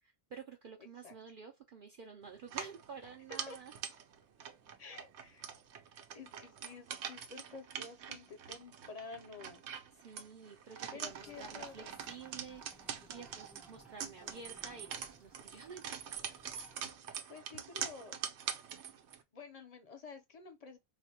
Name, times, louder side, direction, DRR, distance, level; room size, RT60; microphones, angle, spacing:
voice 1, 0.0-3.7 10.0-16.0, right 5 dB, 55° right, 0.7 m, -51 dB
sound 1, 2.4-19.2, right 8 dB, 85° right, 0.9 m, -44 dB
voice 2, 4.8-5.5 6.1-9.6 10.9-11.9 17.3-18.2 19.3-20.8, left 4 dB, 40° left, 0.6 m, -50 dB
sound 2, 11.1-16.8, equal, ahead, 0.4 m, -62 dB
4.1 x 2.2 x 2.8 m
omnidirectional pair, 1.1 m